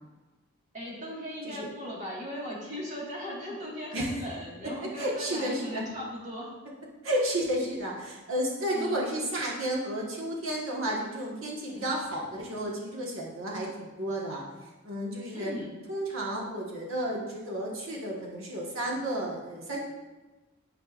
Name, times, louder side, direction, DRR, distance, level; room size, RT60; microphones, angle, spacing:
voice 1, 0.7-6.5 8.7-9.0 11.7-11.9 15.3-15.7, equal, 35° right, -5 dB, 1.8 m, -38 dB
voice 2, 4.6-5.8 7.0-15.5 15.9-19.8, right 1 dB, 70° right, -3 dB, 1.4 m, -32 dB
11.5 x 4.6 x 2.5 m, 1.2 s
head